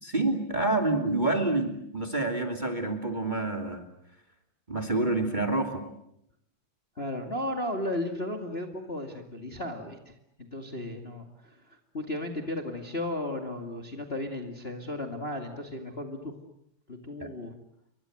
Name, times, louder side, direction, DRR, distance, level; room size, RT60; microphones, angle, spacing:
voice 1, 0.0-3.8 4.7-5.8 17.2-17.3, right 2 dB, 15° right, 6 dB, 2.7 m, -28 dB
voice 2, 7.0-16.3 16.9-17.5, left 1 dB, 20° left, 5 dB, 2.2 m, -35 dB
30.0 x 24.0 x 7.9 m, 0.75 s
omnidirectional pair, 3.3 m